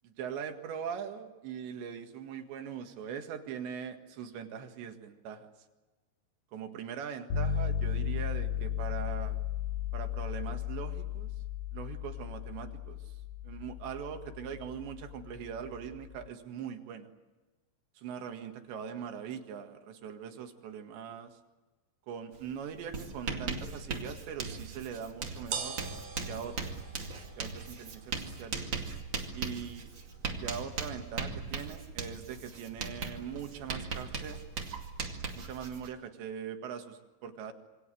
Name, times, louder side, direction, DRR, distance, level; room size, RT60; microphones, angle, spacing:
voice 1, 0.0-5.5 6.5-9.4 9.9-11.3 11.7-13.1 13.4-17.1 18.0-21.4 22.1-25.8 26.3-26.7 27.4-28.6 29.3-29.9 30.3-34.4 35.4-37.5, right 7 dB, 70° right, 5 dB, 4.0 m, -41 dB
sound 1, 7.3-16.3, left 9 dB, 90° left, 5.3 m, -35 dB
Writing, 22.3-22.5 22.8-35.9, right 4 dB, 35° right, 2.1 m, -39 dB
sound 2, 24.4-34.4, right 6 dB, 55° right, 3.8 m, -47 dB
27.0 x 25.0 x 7.8 m, 1.2 s
omnidirectional pair, 5.4 m